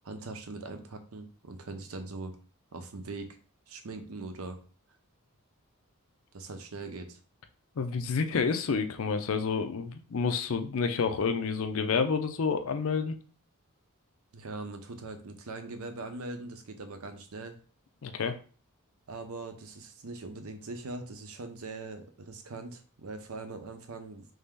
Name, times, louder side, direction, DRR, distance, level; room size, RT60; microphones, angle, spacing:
voice 1, 0.0-2.4 2.7-3.4 3.7-4.6 6.3-7.2 14.3-17.6 19.1-24.3, right 3 dB, 75° right, 7 dB, 0.6 m, -41 dB
voice 2, 7.8-13.2 18.0-18.4, left 5 dB, 65° left, 8 dB, 0.5 m, -29 dB
3.4 x 2.7 x 3.6 m, 0.39 s
head